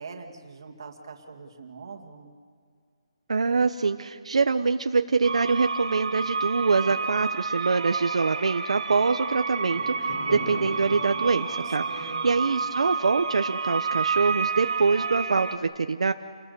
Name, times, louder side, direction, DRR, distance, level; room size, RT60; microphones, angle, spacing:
voice 1, 0.0-2.3 11.6-12.5, right 4 dB, 45° right, 3 dB, 2.2 m, -43 dB
voice 2, 3.3-11.8 12.2-16.1, right 4 dB, 90° right, 8 dB, 0.9 m, -24 dB
sound 1, 5.2-15.6, right 5 dB, 65° right, 1.7 m, -30 dB
Fireworks, 9.6-14.1, left 1 dB, 80° left, 7.9 m, -41 dB
29.0 x 20.5 x 6.9 m, 2.1 s
hypercardioid pair, 175°, 3 cm